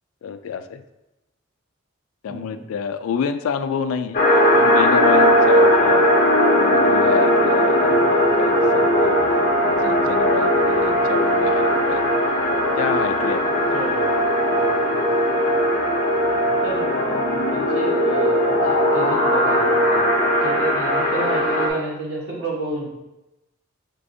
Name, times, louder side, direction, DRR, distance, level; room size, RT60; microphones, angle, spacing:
voice 1, 0.2-0.8 2.2-4.2 4.6-6.1 6.5-9.2 9.6-12.0 12.7-13.6 14.5-14.6, left 7 dB, 80° left, 10 dB, 0.3 m, -28 dB
voice 2, 2.3-2.7 13.6-14.2 14.4-15.1 16.6-20.0 20.4-22.9, right 2 dB, 70° right, -4 dB, 1.2 m, -31 dB
sound 1, 4.1-21.7, equal, 40° left, 0.7 m, -18 dB
4.6 x 3.3 x 2.6 m, 0.95 s
head